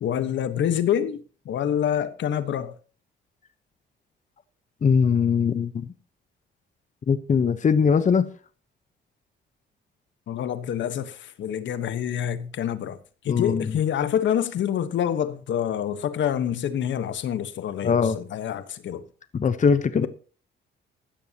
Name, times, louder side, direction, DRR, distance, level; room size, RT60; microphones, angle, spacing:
voice 1, 0.0-1.2 1.4-2.7 10.3-13.0 13.2-19.0 20.0-20.1, left 9 dB, 70° left, 1.3 m, -26 dB
voice 2, 4.8-5.9 7.1-8.3 13.3-13.7 17.8-18.2 19.3-20.1, left 6 dB, 40° left, 0.9 m, -21 dB
16.0 x 12.5 x 2.9 m
cardioid pair, 90°, 20 cm